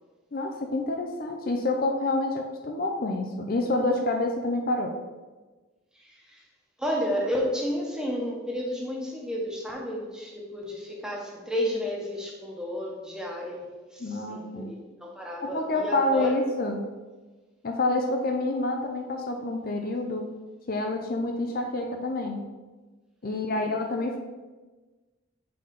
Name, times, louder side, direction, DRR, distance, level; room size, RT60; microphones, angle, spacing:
voice 1, 0.3-5.0 14.0-14.7 15.4-16.8 17.6-20.3 20.7-22.4 23.2-24.2, left 2 dB, 45° left, 3 dB, 0.5 m, -28 dB
voice 2, 5.9-6.4 6.8-16.4 23.3-23.7, equal, 5° right, -2 dB, 1.0 m, -32 dB
5.6 x 4.0 x 5.1 m, 1.2 s
head